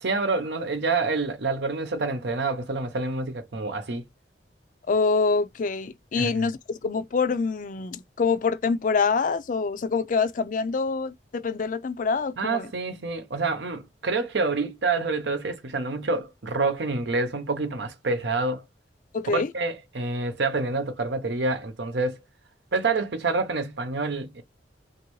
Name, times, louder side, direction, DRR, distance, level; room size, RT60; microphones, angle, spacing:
voice 1, 0.0-4.0 6.1-6.5 12.4-18.6 19.3-22.2 22.7-24.4, right 3 dB, 85° right, 0.8 m, -27 dB
voice 2, 4.9-12.7 19.1-19.5, left 4 dB, 50° left, 0.4 m, -25 dB
3.1 x 2.6 x 3.1 m
head